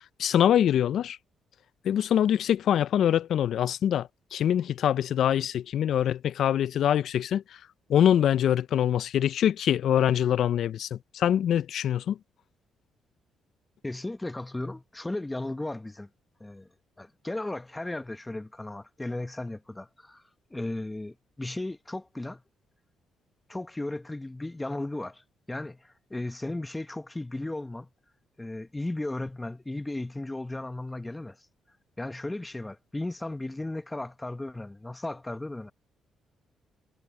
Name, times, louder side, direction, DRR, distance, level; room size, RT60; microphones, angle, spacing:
voice 1, 0.2-1.2 1.8-7.4 7.9-12.2, left 10 dB, 70° left, 0.5 m, -24 dB
voice 2, 13.8-16.1 16.4-16.7 17.0-20.2 20.5-22.4 23.5-27.9 28.4-31.5 32.0-35.7, left 2 dB, 15° left, 1.0 m, -35 dB
cardioid pair, 90°, 0 cm